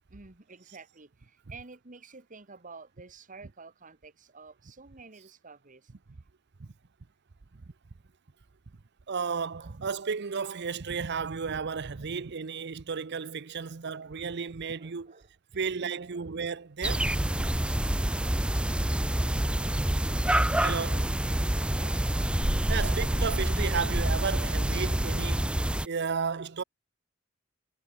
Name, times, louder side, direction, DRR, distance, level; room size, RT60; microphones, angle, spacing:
voice 1, 0.1-5.9 9.6-9.8 12.0-12.1 13.5-13.7 14.8-16.3 19.3-19.9 21.6-22.0 24.9-25.0, right 4 dB, 40° right, 1.7 m, -51 dB
voice 2, 9.1-15.1 15.5-17.1 20.6-21.1 22.7-25.5 25.8-26.6, right 5 dB, 55° right, 0.7 m, -33 dB
sound 1, 16.8-25.9, right 1 dB, 5° right, 0.4 m, -27 dB
head